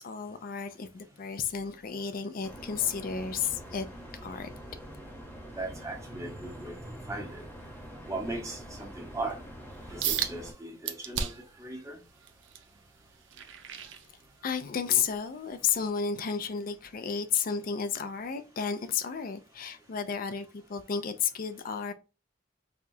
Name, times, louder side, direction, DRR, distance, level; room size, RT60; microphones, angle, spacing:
voice 1, 0.0-3.9 4.2-4.5 14.4-21.9, left 7 dB, 45° left, 0.4 m, -32 dB
sound 1, 2.4-10.5, equal, 10° left, 1.0 m, -45 dB
voice 2, 5.5-7.4 8.1-9.4 9.9-12.0, right 2 dB, 15° right, 0.9 m, -38 dB
sound 2, 10.0-10.3 10.8-11.5 12.0-14.6 15.1-15.3 15.9-16.0, right 8 dB, 70° right, 0.5 m, -34 dB
4.7 x 2.4 x 2.6 m
head